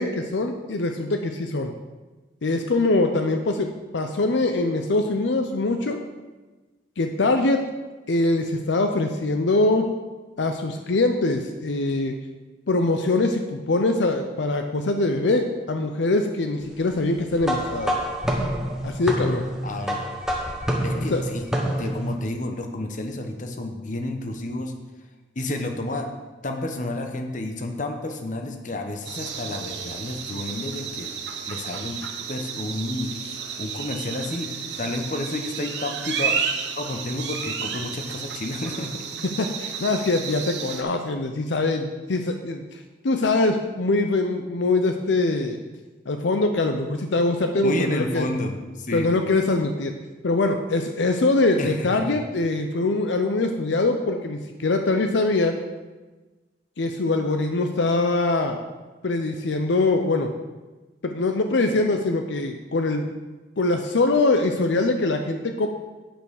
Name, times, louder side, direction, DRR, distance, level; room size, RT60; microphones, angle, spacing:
voice 1, 0.0-1.7 2.4-6.0 7.0-7.6 8.1-9.9 10.4-12.1 12.7-18.0 18.8-19.5 20.9-21.2 39.4-42.8 43.0-45.6 46.1-48.3 48.9-49.9 50.2-55.6 56.8-58.6 59.0-60.3 61.0-63.1 63.6-65.7, left 2 dB, 70° left, 5 dB, 0.6 m, -23 dB
sound 1, 17.4-22.1, equal, 5° right, 1.0 m, -27 dB
voice 2, 19.6-20.1 20.8-21.5 21.8-24.7 25.3-26.1 26.4-31.1 31.5-32.0 32.3-34.5 34.8-36.3 36.7-39.0 47.6-49.1 51.6-52.2, left 2 dB, 40° left, 4 dB, 0.9 m, -30 dB
sound 2, 29.1-40.8, right 6 dB, 65° right, 1.1 m, -32 dB
8.8 x 5.5 x 6.4 m, 1.2 s
head